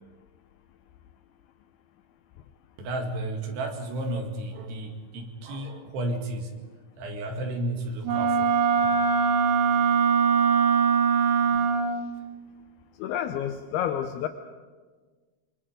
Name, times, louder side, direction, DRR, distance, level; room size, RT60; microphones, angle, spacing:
voice 1, 2.8-6.5 7.0-8.6 9.1-9.2, right 1 dB, 90° right, 3 dB, 4.3 m, -32 dB
Wind instrument woodwind instrument, 8.0-12.1, right 6 dB, 65° right, 2.3 m, -22 dB
voice 2, 13.0-14.3, left 10 dB, 80° left, 8 dB, 2.7 m, -29 dB
25.5 x 24.5 x 5.1 m, 1.4 s
omnidirectional pair, 4.6 m